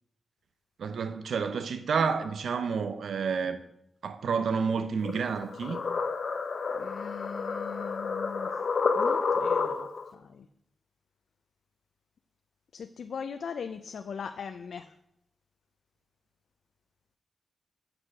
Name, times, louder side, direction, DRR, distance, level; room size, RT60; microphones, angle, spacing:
voice 1, 0.8-3.6 4.0-5.8, right 5 dB, 80° right, 0.6 m, -29 dB
sound 1, 5.0-10.1, left 5 dB, 50° left, 0.8 m, -30 dB
voice 2, 6.7-8.5 9.0-10.5 12.7-14.9, left 6 dB, 70° left, 0.4 m, -40 dB
7.8 x 6.4 x 6.0 m
wide cardioid pair, 175°, 0 cm